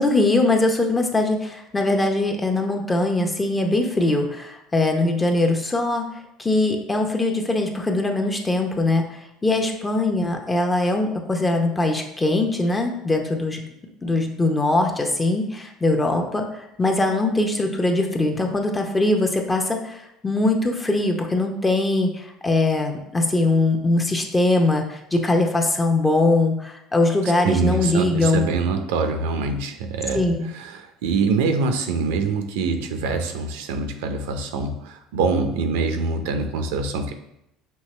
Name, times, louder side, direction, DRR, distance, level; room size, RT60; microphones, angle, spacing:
voice 1, 0.0-6.0 6.4-13.6 14.0-28.4 30.1-30.5, left 2 dB, 15° left, 3 dB, 0.7 m, -21 dB
voice 2, 27.4-37.1, right 4 dB, 85° right, 6 dB, 0.5 m, -24 dB
5.5 x 2.8 x 3.2 m, 0.83 s
supercardioid pair, 100°, 0 cm